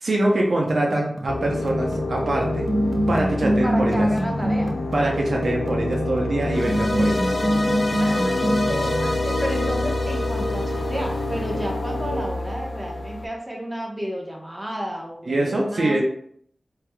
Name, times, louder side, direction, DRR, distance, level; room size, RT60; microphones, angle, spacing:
voice 1, 0.0-2.7 3.1-4.1 4.9-7.3 15.3-16.0, right 1 dB, 80° right, -1 dB, 0.8 m, -24 dB
sound 1, 0.7-9.2, equal, 40° right, 0.6 m, -25 dB
sound 2, 1.3-13.3, left 2 dB, 90° left, 0.4 m, -28 dB
voice 2, 3.6-4.8 8.0-16.0, equal, 20° right, 0 dB, 1.1 m, -31 dB
sound 3, 6.5-11.7, left 1 dB, 45° left, 0.7 m, -29 dB
4.8 x 3.4 x 2.3 m, 0.66 s
cardioid pair, 45°, 0 cm